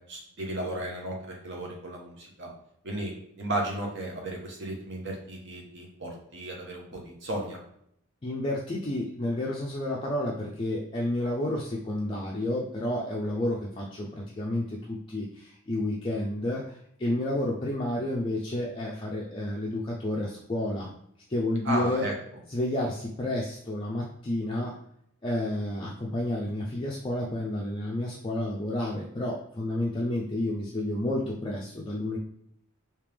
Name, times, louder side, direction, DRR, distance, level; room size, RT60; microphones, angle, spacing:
voice 1, 0.1-2.5 2.8-7.6 21.6-22.1, right 1 dB, 55° right, 0 dB, 0.9 m, -34 dB
voice 2, 8.2-20.9 21.3-22.0 22.5-24.7 25.2-32.2, left 1 dB, 25° left, -3 dB, 0.4 m, -30 dB
3.3 x 2.9 x 3.4 m, 0.71 s
head